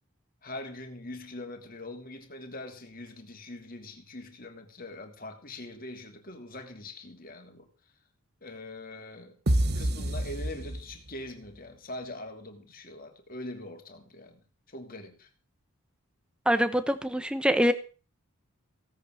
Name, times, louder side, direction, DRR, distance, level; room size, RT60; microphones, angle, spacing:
voice 1, 0.4-7.7 8.4-9.4 9.7-15.3, left 2 dB, 40° left, 5 dB, 2.8 m, -43 dB
Boom Kick, 9.5-11.3, right 1 dB, 45° right, 1.0 m, -28 dB
voice 2, 16.5-17.7, equal, 5° right, 11 dB, 1.0 m, -24 dB
17.0 x 8.6 x 6.5 m, 0.38 s
head